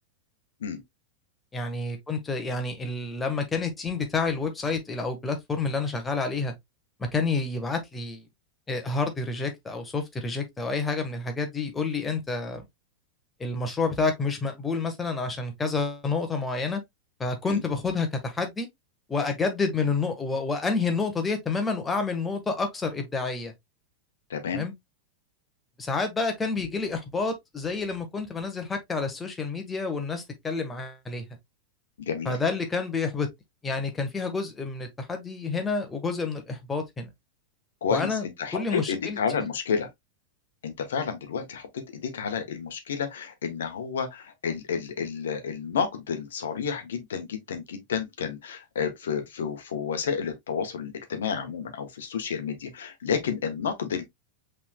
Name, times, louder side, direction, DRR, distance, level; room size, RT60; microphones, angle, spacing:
voice 1, 1.5-6.5 7.0-8.2 8.7-12.6 13.4-16.8 17.2-18.7 19.1-23.5 24.5-24.7 25.8-31.2 32.2-33.3 33.6-37.1 37.9-38.2 38.5-39.5, left 4 dB, 15° left, 1.5 m, -29 dB
voice 2, 24.3-24.6 32.0-32.3 37.8-39.9 40.6-54.0, left 6 dB, 60° left, 1.2 m, -30 dB
5.8 x 3.7 x 2.3 m
figure-of-eight pair, 90°, 0 cm